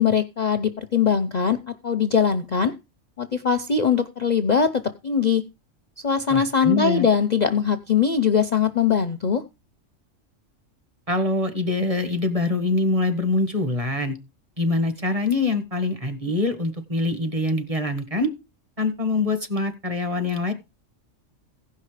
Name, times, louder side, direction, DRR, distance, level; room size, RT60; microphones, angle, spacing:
voice 1, 0.0-2.7 3.2-5.4 6.0-9.4, left 7 dB, 40° left, 9 dB, 0.7 m, -21 dB
voice 2, 6.3-7.1 11.1-14.2 14.6-18.3 18.8-20.5, left 2 dB, 25° right, 8 dB, 1.6 m, -24 dB
16.0 x 5.6 x 4.9 m, 0.26 s
omnidirectional pair, 1.3 m